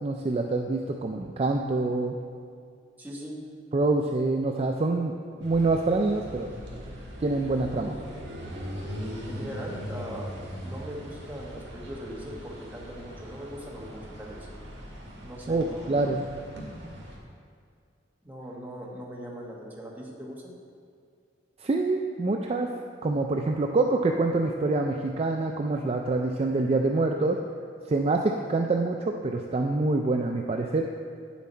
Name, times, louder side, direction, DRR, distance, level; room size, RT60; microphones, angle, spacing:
voice 1, 0.0-2.1 3.7-5.1 5.4-6.8 7.2-8.0 15.5-16.3 21.6-22.7 23.0-27.4 27.9-30.8, right 3 dB, 35° right, 2 dB, 0.4 m, -26 dB
voice 2, 3.0-3.4 9.3-10.3 10.6-14.5 15.2-15.9 18.2-20.6, equal, 10° right, -3 dB, 1.3 m, -40 dB
sound 1, 5.4-17.2, equal, 70° right, 1.9 m, -40 dB
9.2 x 7.2 x 4.3 m, 2.2 s
head